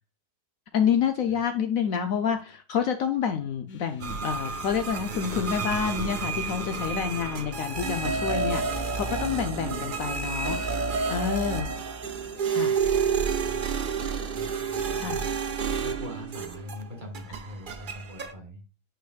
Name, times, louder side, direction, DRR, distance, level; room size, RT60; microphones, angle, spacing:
voice 1, 0.7-10.6 11.1-11.8 12.5-12.8 15.0-15.3, left 7 dB, 70° left, 7 dB, 0.9 m, -28 dB
sound 1, 3.7-4.9 5.1-10.0, left 3 dB, 85° left, 0.4 m, -44 dB
sound 2, 4.0-16.9 17.1-18.3, right 5 dB, 60° right, 0.5 m, -30 dB
voice 2, 12.1-15.5 15.8-18.6, left 1 dB, 30° right, 3 dB, 1.5 m, -44 dB
9.0 x 5.1 x 2.3 m, 0.33 s
omnidirectional pair, 1.8 m